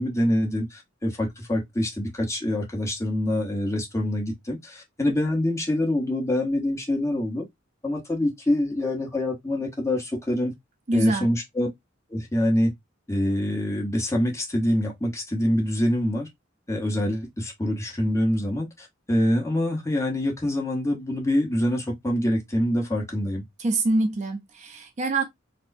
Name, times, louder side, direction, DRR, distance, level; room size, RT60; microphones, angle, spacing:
voice 1, 0.0-7.4 7.8-10.5 10.9-11.7 12.1-12.7 13.1-16.3 16.7-23.4, left 1 dB, 15° left, 1.0 m, -25 dB
voice 2, 10.9-11.3 23.6-25.2, right 2 dB, 35° right, 0.5 m, -25 dB
4.2 x 2.1 x 2.5 m
head